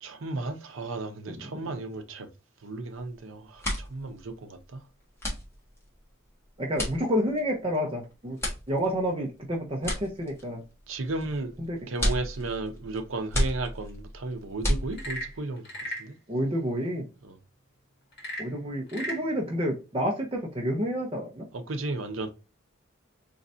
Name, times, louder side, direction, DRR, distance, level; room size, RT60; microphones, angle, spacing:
voice 1, 0.0-2.3 2.6-4.8 10.9-11.6 11.9-16.1 17.2-17.3 21.5-22.3, right 2 dB, 70° right, 0.7 m, -34 dB
voice 2, 1.3-1.7 6.6-8.4 8.7-10.6 11.6-11.8 16.3-17.0 18.4-21.4, equal, 25° right, 0.7 m, -29 dB
sound 1, 2.9-3.2 3.4-15.4, equal, 10° left, 1.4 m, -33 dB
Frog / Percussion / Wood, 14.8-16.1 18.1-19.3, right 1 dB, 50° left, 1.6 m, -36 dB
3.9 x 3.2 x 2.7 m
head